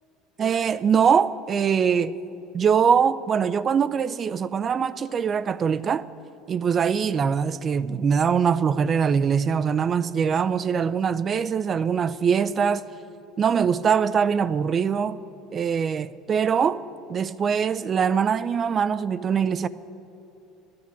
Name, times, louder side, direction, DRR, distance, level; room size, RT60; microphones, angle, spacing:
voice 1, 0.4-2.1 2.5-6.1 6.5-12.8 13.4-15.2 15.5-16.8 17.1-19.7, right 7 dB, 40° right, 0.5 m, -22 dB
13.5 x 10.5 x 8.4 m
supercardioid pair, 90°, 0 cm